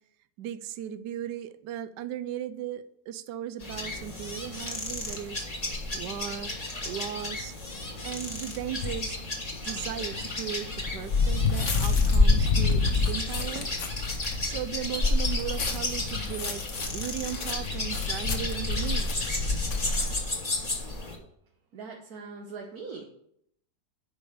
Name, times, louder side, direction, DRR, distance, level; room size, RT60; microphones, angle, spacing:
voice 1, 0.4-5.4 5.9-7.5 8.0-9.2 9.6-10.7 10.9-13.7 14.4-16.6 16.9-19.2, right 10 dB, 80° right, 13 dB, 1.2 m, -37 dB
sound 1, 3.6-21.2, left 2 dB, 25° left, 1.6 m, -31 dB
sound 2, 8.8-9.1 9.7-20.2, left 4 dB, 50° left, 1.3 m, -29 dB
voice 2, 21.7-23.0, right 4 dB, 60° right, 1 dB, 1.6 m, -41 dB
9.8 x 5.3 x 6.6 m, 0.70 s
omnidirectional pair, 1.9 m